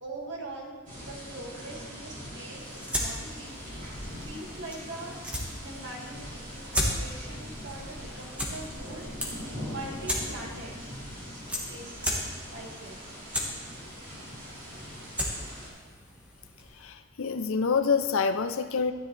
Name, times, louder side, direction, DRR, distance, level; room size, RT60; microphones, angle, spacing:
voice 1, 0.0-3.6 4.2-9.2 9.6-10.7 11.1-11.4 11.7-13.1, right 2 dB, 50° right, -2 dB, 2.0 m, -43 dB
sound 1, 0.9-15.7, equal, 35° right, 3.5 m, -42 dB
sound 2, 2.5-16.9, equal, 5° right, 1.3 m, -37 dB
voice 2, 16.8-18.9, left 5 dB, 65° left, 10 dB, 0.5 m, -27 dB
13.0 x 10.0 x 3.3 m, 1.5 s
head